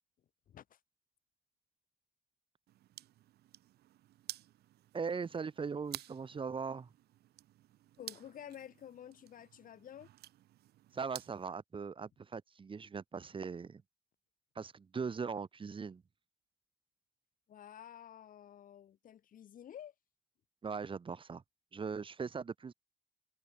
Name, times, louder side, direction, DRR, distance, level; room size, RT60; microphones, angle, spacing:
voice 1, 0.5-0.8 8.0-10.1 17.5-19.9, left 10 dB, 55° left, 4.7 m, -51 dB
sound 1, 2.7-11.5, right 14 dB, 70° right, 3.1 m, -52 dB
voice 2, 4.9-6.9 10.9-13.8 14.6-16.0 20.6-21.4 21.7-22.7, right 5 dB, 30° right, 3.9 m, -40 dB
cardioid pair, 110°, 17 cm